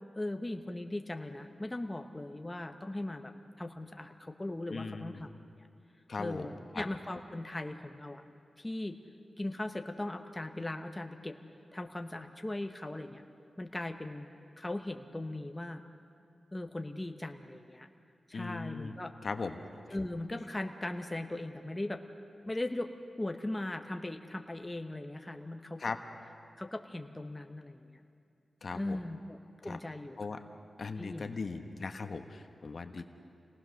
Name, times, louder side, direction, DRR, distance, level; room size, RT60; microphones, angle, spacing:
voice 1, 0.1-3.3 3.6-5.3 6.2-8.2 8.6-9.0 9.4-11.4 11.7-13.2 13.6-14.3 14.6-15.8 16.5-17.9 18.3-19.1 19.9-22.0 22.5-22.9 23.2-25.8 26.6-28.0 28.7-30.2 31.0-31.3, left 1 dB, 15° left, 5 dB, 1.0 m, -39 dB
voice 2, 4.7-5.2 6.1-6.5 6.7-6.8 18.3-18.9 19.2-19.6 25.8-26.0 28.6-29.1 29.6-29.8 30.2-30.4 30.8-33.0, left 4 dB, 60° left, 7 dB, 1.2 m, -38 dB
28.0 x 18.5 x 6.5 m, 2.5 s
wide cardioid pair, 90°, 0 cm